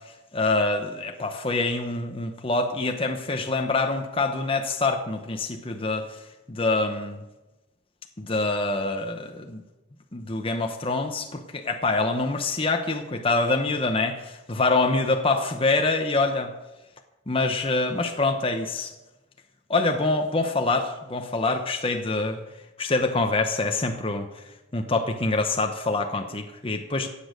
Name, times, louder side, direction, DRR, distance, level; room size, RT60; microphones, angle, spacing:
voice 1, 0.3-6.1 6.5-7.2 8.2-9.6 10.1-16.5 17.3-18.9 19.7-22.4 22.8-24.3 24.7-27.1, left 3 dB, 25° left, 5 dB, 0.9 m, -25 dB
15.0 x 8.6 x 7.8 m, 1.1 s
head